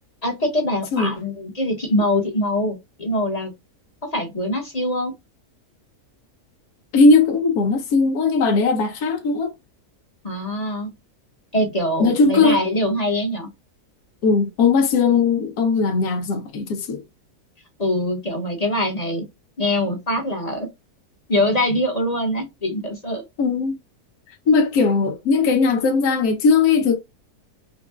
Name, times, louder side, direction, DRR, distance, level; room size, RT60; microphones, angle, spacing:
voice 1, 0.2-3.5 4.0-5.1 10.2-10.9 11.5-13.5 17.8-19.2 19.6-20.7 21.3-23.2, left 1 dB, 30° left, 1.1 m, -23 dB
voice 2, 6.9-9.5 12.0-12.6 14.2-17.0 23.4-23.8 24.5-27.0, left 4 dB, 75° left, 1.3 m, -18 dB
5.4 x 2.3 x 2.3 m
omnidirectional pair, 1.6 m